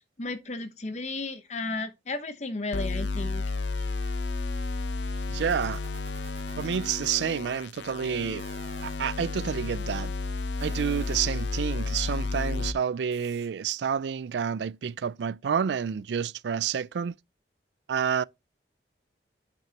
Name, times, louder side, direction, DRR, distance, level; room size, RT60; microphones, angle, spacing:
voice 1, 0.2-3.4, left 3 dB, 40° left, 0.9 m, -34 dB
sound 1, 2.7-12.7, left 3 dB, 90° left, 0.7 m, -32 dB
sound 2, 3.1-7.2 8.3-9.0 10.4-11.4 13.1-13.5, right 3 dB, 35° right, 2.5 m, -52 dB
voice 2, 5.3-5.8 6.6-8.4 8.8-10.1 10.6-17.1 17.9-18.2, right 7 dB, 75° right, 0.3 m, -29 dB
8.8 x 6.1 x 2.8 m
head